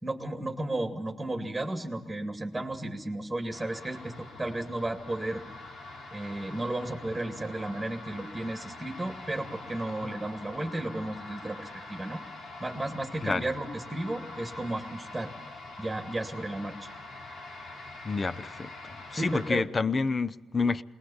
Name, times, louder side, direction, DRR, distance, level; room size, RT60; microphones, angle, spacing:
voice 1, 0.0-5.4 6.1-12.2 12.6-15.3 15.8-16.9 19.1-19.7, right 1 dB, 5° right, 2.1 m, -33 dB
sound 1, 3.5-19.5, left 2 dB, 65° left, 3.3 m, -44 dB
voice 2, 18.0-18.7 19.1-20.8, left 4 dB, 30° left, 0.7 m, -28 dB
21.5 x 19.5 x 7.2 m
cardioid pair, 90°, 0 cm